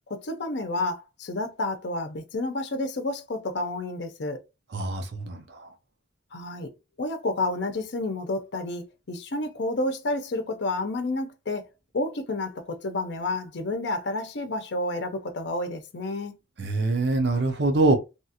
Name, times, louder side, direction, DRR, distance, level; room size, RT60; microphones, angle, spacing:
voice 1, 0.1-4.4 6.3-6.7 7.0-11.7 11.9-16.4, left 2 dB, 70° left, 0.6 m, -30 dB
voice 2, 4.7-5.6 16.6-17.9, right 2 dB, 65° right, 0.6 m, -24 dB
2.8 x 2.4 x 2.7 m
head